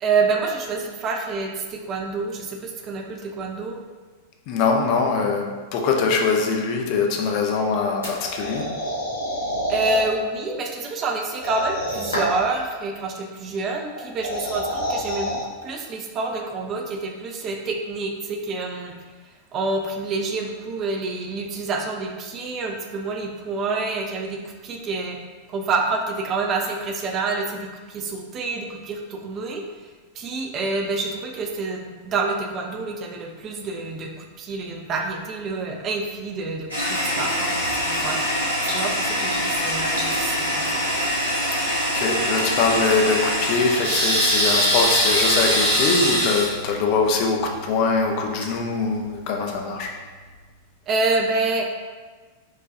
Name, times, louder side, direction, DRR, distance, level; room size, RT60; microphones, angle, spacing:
voice 1, 0.0-3.8 9.7-18.9 19.5-25.2 25.5-29.6 30.2-37.5 37.9-38.2 38.6-40.8 50.9-51.6, right 3 dB, 30° right, 2 dB, 0.5 m, -27 dB
voice 2, 4.5-8.7 42.0-49.9, left 4 dB, 45° left, 1 dB, 0.5 m, -22 dB
sound 1, 8.0-10.0 11.3-12.5 14.0-15.4, equal, 70° left, 1.3 m, -28 dB
Toilet flush, 36.7-49.3, equal, 85° right, 1.0 m, -23 dB
4.8 x 2.3 x 2.7 m, 1.4 s
figure-of-eight pair, 90°, 0 cm